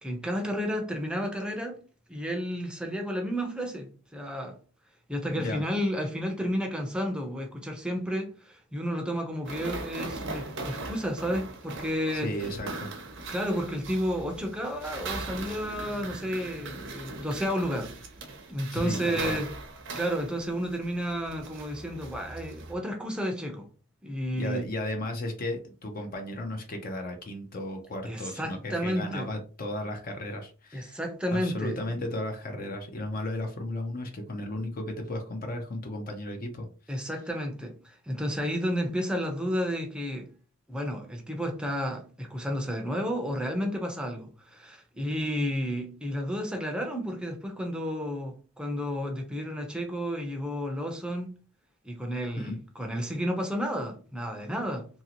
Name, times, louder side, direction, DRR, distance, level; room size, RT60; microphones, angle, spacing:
voice 1, 0.0-1.8 2.1-4.6 5.1-12.3 13.3-17.9 18.5-19.5 19.9-23.7 24.0-24.7 28.1-29.3 30.7-31.8 36.9-40.3 40.7-51.3 51.8-54.9, equal, 5° right, 0.5 m, -31 dB
sound 1, 9.4-22.7, right 3 dB, 60° right, 0.6 m, -40 dB
voice 2, 12.1-12.9 18.7-19.4 24.3-31.0 31.3-37.1 52.4-52.6, left 1 dB, 40° left, 0.5 m, -35 dB
2.9 x 2.7 x 2.8 m
head